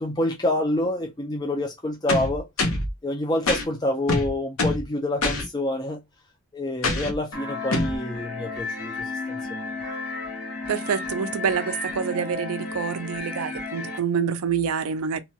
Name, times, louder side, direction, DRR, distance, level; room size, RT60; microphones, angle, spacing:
voice 1, 0.0-2.4 3.0-6.0 6.5-9.6, left 1 dB, 20° left, 0.4 m, -27 dB
sound 1, 2.1-2.9 3.5-3.6 4.1-4.9 5.2-5.4 6.8-7.2 7.7-8.0, left 2 dB, 70° left, 0.8 m, -24 dB
sound 2, 7.3-14.0, left 3 dB, 90° left, 1.1 m, -33 dB
voice 2, 10.7-15.2, right 6 dB, 75° right, 0.4 m, -27 dB
2.8 x 2.2 x 2.7 m
head